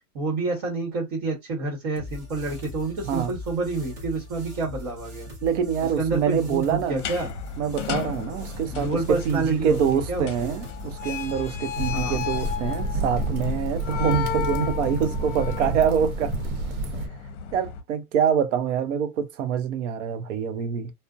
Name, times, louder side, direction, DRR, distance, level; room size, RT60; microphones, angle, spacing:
voice 1, 0.1-5.3 6.0-7.3 8.7-10.5 11.9-12.2, right 3 dB, 40° right, 1.1 m, -28 dB
sound 1, 2.0-12.5, left 1 dB, 15° right, 0.3 m, -40 dB
voice 2, 5.4-7.0 7.6-16.3 17.5-20.9, right 8 dB, 60° right, 0.6 m, -25 dB
sound 2, 6.9-17.8, left 8 dB, 55° left, 0.7 m, -34 dB
sound 3, 11.8-17.1, right 1 dB, 80° right, 0.9 m, -29 dB
2.5 x 2.1 x 2.4 m
supercardioid pair, 150°, 43 cm